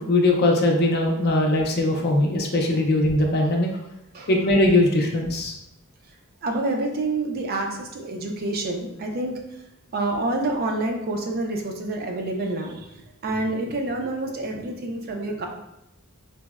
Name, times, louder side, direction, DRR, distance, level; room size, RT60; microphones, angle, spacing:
voice 1, 0.0-3.7 4.3-5.6, left 1 dB, 50° left, 1 dB, 0.5 m, -20 dB
voice 2, 6.4-9.3 9.9-12.9 13.2-15.5, right 2 dB, 45° right, 2 dB, 0.4 m, -27 dB
3.9 x 2.0 x 2.3 m, 0.86 s
head